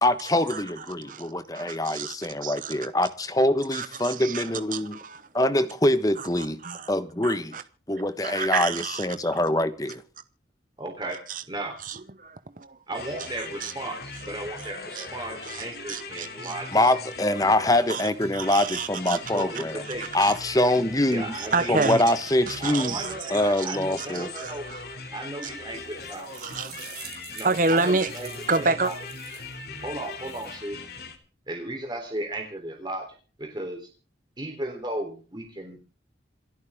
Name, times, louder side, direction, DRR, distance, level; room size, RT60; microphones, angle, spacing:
voice 1, 0.0-5.0 5.3-6.6 6.9-7.6 7.9-10.0 16.7-19.8 20.1-21.3 21.7-22.9 23.3-24.3, left 1 dB, 20° left, 12 dB, 1.1 m, -24 dB
voice 2, 1.0-2.1 2.4-2.7 3.7-4.4 4.7-5.2 6.2-6.9 7.2-7.6 8.2-9.3 11.3-11.4 11.8-12.8 13.4-13.7 15.0-15.1 15.4-16.5 17.9-18.0 18.3-19.2 20.2-20.3 21.3-22.1 22.5-24.8 26.4-27.1 27.4-28.1 28.5-28.9, right 4 dB, 45° right, 12 dB, 0.8 m, -30 dB
voice 3, 10.8-11.2 11.5-11.8 12.9-16.7 19.3-20.1 21.1-21.8 22.6-24.6 25.1-26.3 27.3-28.3 28.5-29.0 29.8-30.8 31.5-33.1 33.4-33.9 34.4-35.8, right 1 dB, 25° right, 3 dB, 3.4 m, -35 dB
sound 1, 12.9-31.2, left 3 dB, 55° left, 2.8 m, -40 dB
sound 2, 25.8-29.5 30.0-30.5, right 11 dB, 65° right, 5.1 m, -46 dB
27.5 x 9.6 x 3.6 m, 0.38 s
head